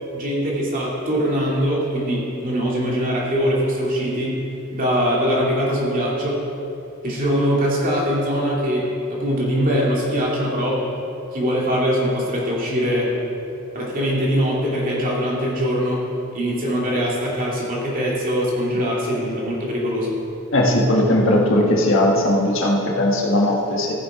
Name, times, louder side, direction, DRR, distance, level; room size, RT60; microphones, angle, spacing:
voice 1, 0.1-4.4 4.7-6.4 7.0-10.8 11.3-13.1 13.7-16.0 16.3-20.2, equal, 40° right, -4 dB, 2.5 m, -22 dB
voice 2, 20.5-23.9, left 1 dB, 65° left, -1 dB, 1.6 m, -18 dB
15.0 x 7.7 x 4.9 m, 2.7 s
head